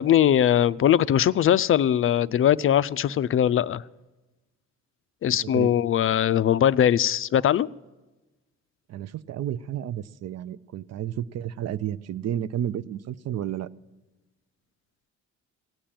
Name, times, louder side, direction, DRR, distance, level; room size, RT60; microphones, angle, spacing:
voice 1, 0.0-3.8 5.2-7.7, left 10 dB, 45° left, 0.4 m, -21 dB
voice 2, 8.9-13.7, right 10 dB, 60° right, 0.6 m, -31 dB
17.0 x 7.4 x 8.6 m
cardioid pair, 90°, 30 cm